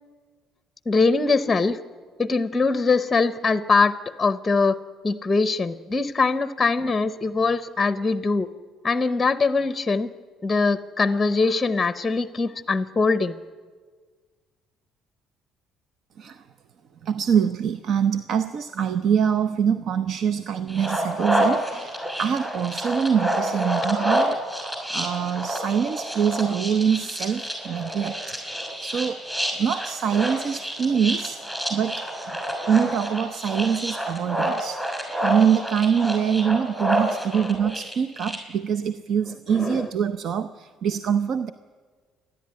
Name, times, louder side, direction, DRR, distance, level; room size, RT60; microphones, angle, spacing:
voice 1, 0.9-1.8 2.2-4.8 5.0-8.5 8.8-10.1 10.4-13.4 37.3-37.5 39.5-39.9, left 4 dB, 20° left, 12 dB, 0.8 m, -22 dB
voice 2, 17.0-24.4 24.9-28.4 28.8-29.3 29.6-31.4 31.7-32.4 32.7-34.8 35.2-41.5, right 7 dB, 55° right, 11 dB, 0.7 m, -24 dB
sound 1, 20.7-38.4, right 1 dB, 10° right, 5.8 m, -28 dB
28.0 x 11.0 x 9.6 m, 1.5 s
cardioid pair, 115°, 0 cm